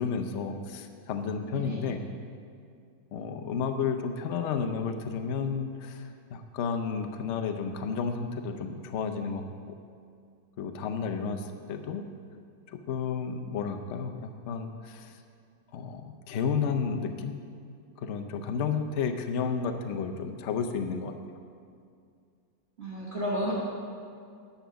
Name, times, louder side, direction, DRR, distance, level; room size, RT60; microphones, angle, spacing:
voice 1, 0.0-2.0 3.1-9.8 10.6-12.0 12.7-15.1 15.7-17.4 18.0-21.1, left 6 dB, 70° left, 6 dB, 0.6 m, -32 dB
voice 2, 1.5-1.8 22.8-23.5, equal, 40° right, -7 dB, 1.4 m, -32 dB
10.0 x 5.7 x 6.9 m, 2.3 s
omnidirectional pair, 2.0 m